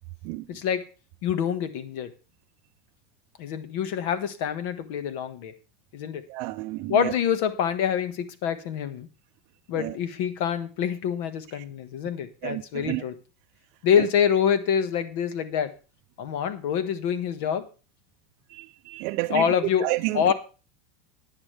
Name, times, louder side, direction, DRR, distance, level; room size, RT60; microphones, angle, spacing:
voice 1, 0.5-0.8 1.2-2.1 3.4-5.5 5.9-6.2 6.9-9.1 9.7-13.1 13.8-15.7 16.2-17.7 19.3-19.9 20.1-20.3, left 8 dB, 60° left, 1.5 m, -26 dB
voice 2, 6.3-7.1 9.7-10.0 11.5-11.6 12.4-13.0 14.0-14.1 18.5-19.5 19.8-20.2, right 20 dB, 50° right, 0.5 m, -30 dB
14.5 x 9.8 x 3.4 m
supercardioid pair, 155°, 0 cm